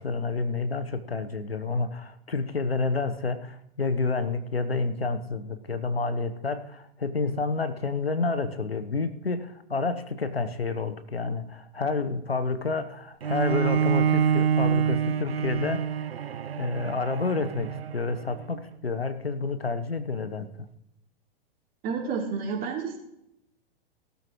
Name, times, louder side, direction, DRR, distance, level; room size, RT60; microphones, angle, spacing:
voice 1, 0.0-15.8 16.6-20.7, left 3 dB, 85° left, 11 dB, 1.1 m, -29 dB
Bowed string instrument, 13.2-18.4, right 8 dB, 80° right, 0.5 m, -26 dB
voice 2, 21.8-23.0, right 5 dB, 30° right, 0 dB, 3.3 m, -30 dB
18.0 x 12.5 x 3.1 m, 0.80 s
figure-of-eight pair, 105°, 30 cm